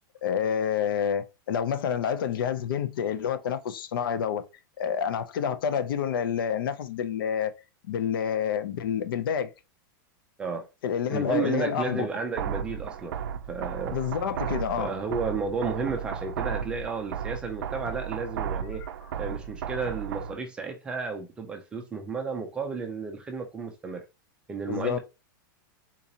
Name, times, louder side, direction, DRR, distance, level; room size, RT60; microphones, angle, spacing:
voice 1, 0.2-4.4 4.8-7.5 7.9-9.5 10.8-12.1 13.9-14.9 24.7-25.0, left 8 dB, 80° left, 0.6 m, -28 dB
voice 2, 11.1-13.2 13.5-14.0 14.8-18.8 19.2-24.0 24.5-25.0, right 4 dB, 10° right, 0.3 m, -32 dB
sound 1, 12.4-20.4, right 8 dB, 85° right, 0.4 m, -34 dB
3.8 x 2.8 x 2.5 m
supercardioid pair, 175°, 12 cm